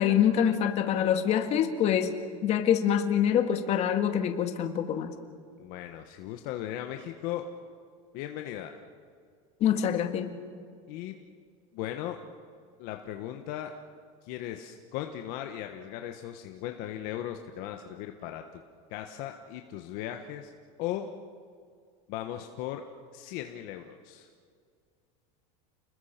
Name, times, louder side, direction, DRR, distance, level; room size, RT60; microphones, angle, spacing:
voice 1, 0.0-2.2 2.4-5.1 9.6-10.3, left 9 dB, 35° left, 7 dB, 1.9 m, -25 dB
voice 2, 5.6-7.5 8.1-8.7 10.9-11.2 11.7-12.2 12.8-13.7 14.2-18.6 18.9-20.5 20.8-21.1 22.1-22.8 23.1-24.3, left 12 dB, 55° left, 5 dB, 1.4 m, -37 dB
30.0 x 20.5 x 5.9 m, 2.2 s
supercardioid pair, 150°, 18 cm